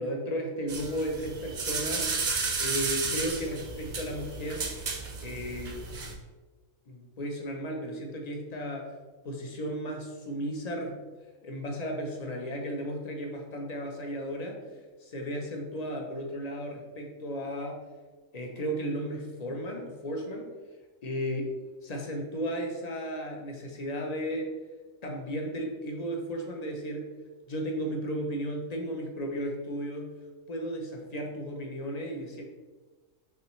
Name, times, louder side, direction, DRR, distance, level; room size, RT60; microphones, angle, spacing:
voice 1, 0.0-2.1 2.6-4.7 5.2-5.8 6.9-8.9 9.2-11.0 11.4-14.6 15.0-17.8 18.3-20.5 21.0-21.6 21.8-24.5 25.0-27.1 27.5-30.1 30.5-32.4, equal, 45° left, 1 dB, 0.5 m, -34 dB
sound 1, 0.7-6.1, right 4 dB, 50° right, 0.6 m, -33 dB
5.6 x 3.1 x 3.1 m, 1.3 s
omnidirectional pair, 1.4 m